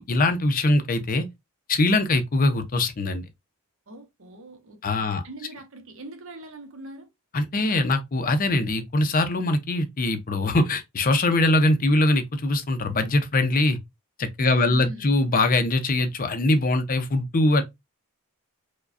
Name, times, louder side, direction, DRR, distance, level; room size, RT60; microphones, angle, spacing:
voice 1, 0.1-1.3 1.7-3.2 4.8-5.2 7.3-13.8 14.2-17.6, left 2 dB, 40° left, 0.5 m, -22 dB
voice 2, 3.9-7.1 14.4-15.2, right 1 dB, 60° right, 0.9 m, -42 dB
4.7 x 2.2 x 2.5 m
head